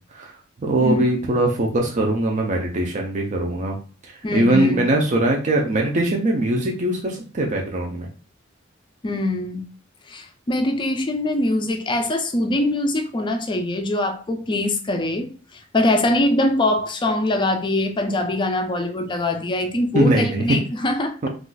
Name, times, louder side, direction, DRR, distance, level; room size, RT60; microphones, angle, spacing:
voice 1, 0.6-3.8 4.0-8.1 19.9-20.6 21.2-21.3, right 1 dB, 35° right, 0.5 m, -21 dB
voice 2, 4.2-4.9 9.0-9.6 10.1-15.3 15.7-21.3, left 1 dB, 25° left, 0.4 m, -23 dB
2.4 x 2.3 x 3.9 m
head